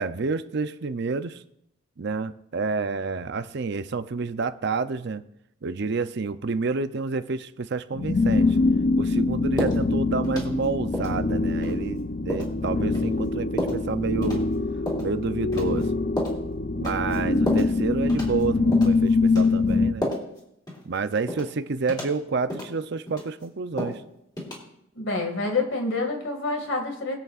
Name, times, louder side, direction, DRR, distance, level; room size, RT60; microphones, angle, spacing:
voice 1, 0.0-1.4 2.0-5.2 5.6-8.6 9.0-14.5 15.0-15.9 16.7-20.1 20.8-24.0, right 4 dB, 55° right, 11 dB, 0.5 m, -29 dB
sound 1, 7.9-19.9, left 3 dB, 40° left, 0.5 m, -24 dB
sound 2, 9.6-9.8 10.2-10.6 10.9-11.2 11.6-11.8 12.3-12.5 12.9-13.1 13.6-13.8 14.2-14.4 14.9-15.1 15.5-15.8 16.2-16.4 16.8-17.2 17.5-17.7 18.1-18.4 18.7-18.9 19.3-19.5 20.0-20.4 20.7-20.8 21.3-21.5 21.9-22.1 22.5-22.7 23.1-23.4 23.8-24.0 24.4-24.5, left 1 dB, 20° left, 3.0 m, -31 dB
voice 2, 25.0-27.2, left 3 dB, 60° left, 3 dB, 2.1 m, -27 dB
22.5 x 8.2 x 2.4 m, 0.77 s
head